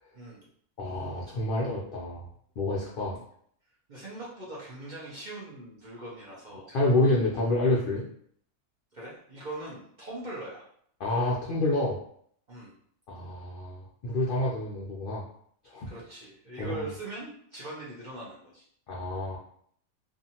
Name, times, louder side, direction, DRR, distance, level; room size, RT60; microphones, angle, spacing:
voice 1, 0.1-0.5 3.9-6.7 8.9-10.7 12.5-12.7 15.9-18.7, right 2 dB, 45° right, -6 dB, 0.7 m, -41 dB
voice 2, 0.8-2.3 2.6-3.2 6.5-8.0 11.0-12.0 13.1-15.2 15.7-15.9 16.6-16.8 18.9-19.4, left 2 dB, 65° left, -4 dB, 0.5 m, -28 dB
2.7 x 2.4 x 2.8 m, 0.64 s
omnidirectional pair, 1.5 m